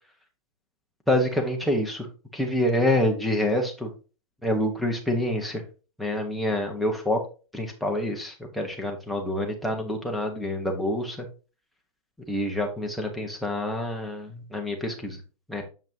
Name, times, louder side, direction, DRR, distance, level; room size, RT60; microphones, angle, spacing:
voice 1, 1.1-2.1 2.3-3.9 4.4-5.6 6.0-7.2 7.5-11.3 12.3-15.2 15.5-15.6, left 1 dB, ahead, 3 dB, 1.1 m, -27 dB
7.4 x 5.8 x 2.8 m, 0.33 s
hypercardioid pair, 155°, 18 cm